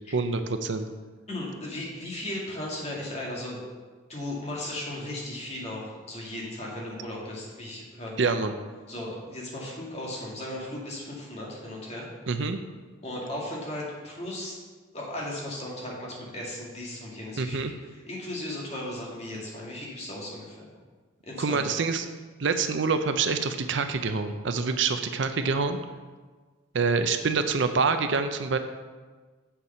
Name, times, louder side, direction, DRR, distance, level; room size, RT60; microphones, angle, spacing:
voice 1, 0.1-0.9 8.2-8.5 12.3-12.6 17.4-17.7 21.4-22.1 22.4-25.8 26.7-28.6, right 4 dB, 60° right, 8 dB, 0.5 m, -26 dB
voice 2, 1.3-3.6 4.1-8.2 8.9-12.1 13.0-14.6 14.9-20.7 21.2-21.6, left 1 dB, 30° left, -4 dB, 2.1 m, -36 dB
7.3 x 6.8 x 5.6 m, 1.4 s
head